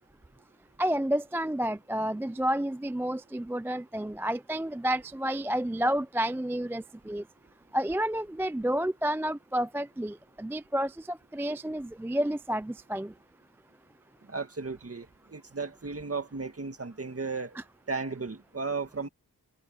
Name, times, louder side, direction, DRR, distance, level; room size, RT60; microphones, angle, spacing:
voice 1, 0.8-7.2 7.7-13.1, equal, 5° right, 0.3 m, -30 dB
voice 2, 14.3-17.6 17.9-19.1, right 4 dB, 40° right, 2.0 m, -35 dB
wide cardioid pair, 90°, 37 cm